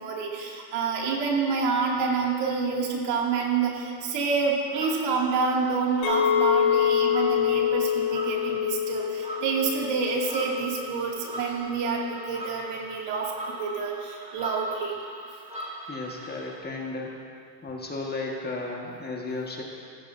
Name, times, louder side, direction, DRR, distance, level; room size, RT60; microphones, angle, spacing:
voice 1, 0.0-14.9, right 5 dB, 55° right, -2 dB, 2.4 m, -28 dB
sound 1, 4.6-16.6, right 1 dB, 15° right, 3.1 m, -40 dB
Chink clink, 6.0-11.2, left 9 dB, 75° left, 3.4 m, -26 dB
voice 2, 15.9-17.1 17.6-19.6, left 3 dB, 20° left, -1 dB, 1.5 m, -34 dB
15.5 x 14.5 x 2.6 m, 2.3 s
supercardioid pair, 115°, 50 cm